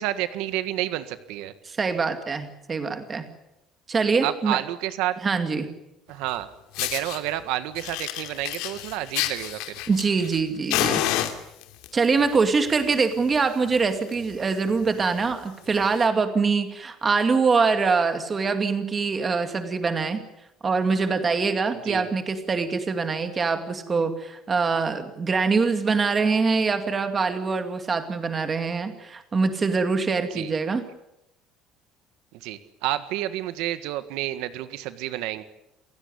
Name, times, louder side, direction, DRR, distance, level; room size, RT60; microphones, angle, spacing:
voice 1, 0.0-1.5 4.2-5.1 6.1-6.5 6.8-9.7 21.7-22.1 30.3-30.5 32.3-35.4, right 14 dB, 85° right, 12 dB, 1.7 m, -30 dB
voice 2, 1.7-3.3 3.9-4.6 5.2-5.7 9.9-11.1 11.9-20.2 20.6-30.8, right 4 dB, 20° right, 8 dB, 2.3 m, -24 dB
Fire, 6.3-6.4 6.7-7.2 7.7-10.4 10.7-11.9 12.7-12.9 13.3-13.4 13.7-13.8 14.1-14.3 14.9-15.0 15.9-16.0, left 13 dB, 90° left, 2.8 m, -28 dB
29.0 x 16.5 x 10.0 m, 0.88 s
cardioid pair, 175°, 0 cm